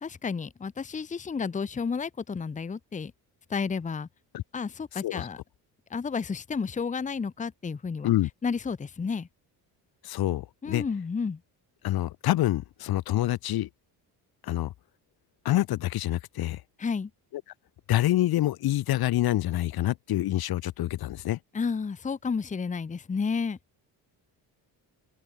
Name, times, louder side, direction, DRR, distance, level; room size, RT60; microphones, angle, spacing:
voice 1, 0.0-3.1 3.5-4.1 4.5-5.4 5.9-8.1 8.4-9.3 10.6-11.4 16.8-17.1 21.5-23.6, left 5 dB, 20° left, 0.7 m, -31 dB
voice 2, 10.0-10.8 11.8-13.7 14.4-14.7 15.4-16.6 17.9-21.4, left 14 dB, 60° left, 0.8 m, -26 dB
open air
cardioid pair, 85°, 42 cm